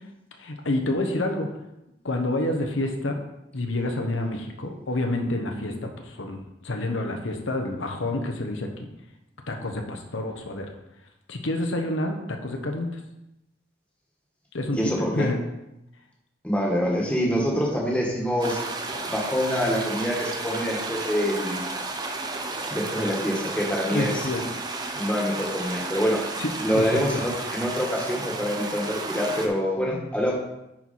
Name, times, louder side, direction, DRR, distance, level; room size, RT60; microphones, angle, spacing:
voice 1, 0.4-1.5 2.0-3.2 3.5-8.7 9.5-10.7 11.3-12.9 14.5-14.8 15.2-15.4 23.9-24.4 26.4-27.0, left 2 dB, 90° left, 3 dB, 1.1 m, -28 dB
voice 2, 14.7-15.3 16.4-18.6 19.1-21.6 22.7-24.3 24.9-26.2 26.6-30.3, equal, 5° left, -2 dB, 1.4 m, -25 dB
sound 1, 18.4-29.5, right 3 dB, 20° right, 0.7 m, -32 dB
10.0 x 4.7 x 4.2 m, 0.89 s
head